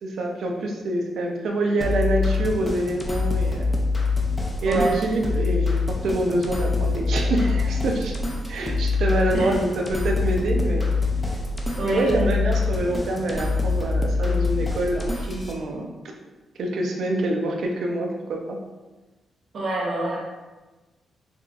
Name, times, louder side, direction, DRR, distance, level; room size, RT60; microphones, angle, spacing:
voice 1, 0.0-3.7 4.6-8.1 8.5-10.9 11.8-16.1 16.6-18.6, right 1 dB, 65° right, 1 dB, 0.5 m, -26 dB
sound 1, 1.8-15.5, left 3 dB, 10° left, 0.4 m, -25 dB
voice 2, 11.8-12.2 19.5-20.2, right 2 dB, 45° right, -5 dB, 1.0 m, -26 dB
4.7 x 2.5 x 2.3 m, 1.2 s
wide cardioid pair, 160°, 0 cm